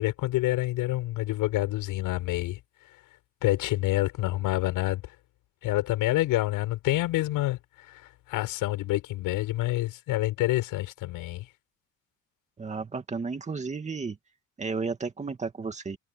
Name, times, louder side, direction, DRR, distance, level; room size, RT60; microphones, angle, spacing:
voice 1, 0.0-2.6 3.4-5.0 5.6-7.6 7.9-8.0 8.3-11.5, left 16 dB, 75° left, 7.1 m, -27 dB
voice 2, 12.6-14.2 14.6-16.0, right 4 dB, 20° right, 2.3 m, -33 dB
cardioid pair, 135°, 33 cm